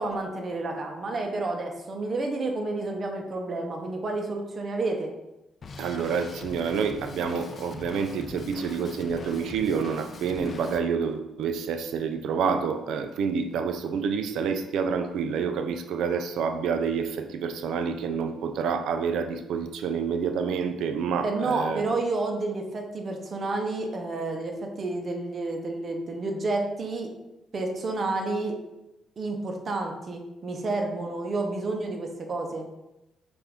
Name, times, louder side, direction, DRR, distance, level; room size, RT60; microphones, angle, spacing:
voice 1, 0.0-5.1 21.2-27.1 27.5-28.5 29.2-32.7, right 2 dB, 45° right, 2 dB, 0.8 m, -30 dB
Drum kit, 5.6-10.8, left 4 dB, 45° left, 0.4 m, -42 dB
voice 2, 5.8-21.8, right 6 dB, 80° right, 7 dB, 0.4 m, -28 dB
5.6 x 2.6 x 3.5 m, 0.94 s
cardioid pair, 90°, 0 cm